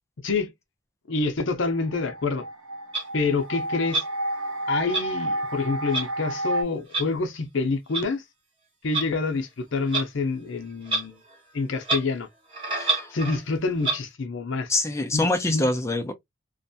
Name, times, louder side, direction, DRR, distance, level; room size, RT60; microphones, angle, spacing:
voice 1, 1.1-2.5 3.1-4.0 4.7-8.2 8.8-11.2 11.5-12.3 13.1-14.7 15.1-15.7, left 3 dB, 65° left, 0.6 m, -27 dB
sound 1, 1.6-6.6, right 1 dB, 85° right, 0.8 m, -31 dB
Clock, 2.9-3.0 3.9-4.1 4.9-5.0 5.9-6.1 6.9-7.0 7.9-8.0 8.9-9.1 9.9-10.1 10.8-11.0 11.3-11.4 11.8-12.0 12.5-13.4 13.8-14.0, right 3 dB, 25° right, 1.0 m, -27 dB
voice 2, 12.7-13.1 14.7-16.1, left 2 dB, 15° left, 0.4 m, -25 dB
2.5 x 2.2 x 2.6 m
head